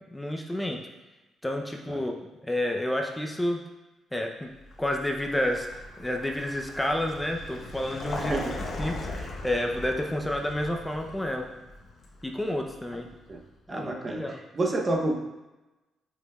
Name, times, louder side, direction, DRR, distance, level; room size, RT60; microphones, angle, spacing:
voice 1, 0.1-0.9 1.4-2.2 2.4-3.6 4.1-4.5 4.8-8.3 8.8-11.5 12.2-13.1 13.7-14.4, left 1 dB, 10° left, 2 dB, 0.5 m, -30 dB
Vehicle, 4.6-13.4, left 2 dB, 50° left, 0.9 m, -39 dB
voice 2, 8.2-8.5 13.3-13.4 13.7-15.2, right 2 dB, 25° right, 2 dB, 0.7 m, -29 dB
8.2 x 5.0 x 2.3 m, 1.1 s
cardioid pair, 130°, 0 cm